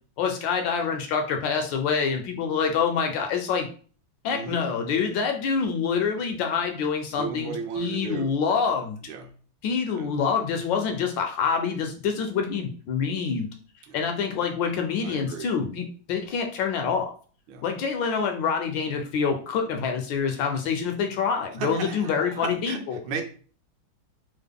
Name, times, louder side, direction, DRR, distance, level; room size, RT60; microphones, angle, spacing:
voice 1, 0.2-3.7 4.2-9.0 9.6-13.5 13.9-17.1 17.6-23.0, left 6 dB, 75° left, 4 dB, 1.2 m, -26 dB
voice 2, 4.3-4.6 7.1-8.3 9.1-9.3 9.9-10.1 13.9-14.0 15.0-15.5 17.5-17.6 19.6-19.9 21.6-23.2, right 6 dB, 80° right, 5 dB, 1.3 m, -35 dB
3.5 x 2.1 x 3.6 m, 0.41 s
omnidirectional pair, 2.2 m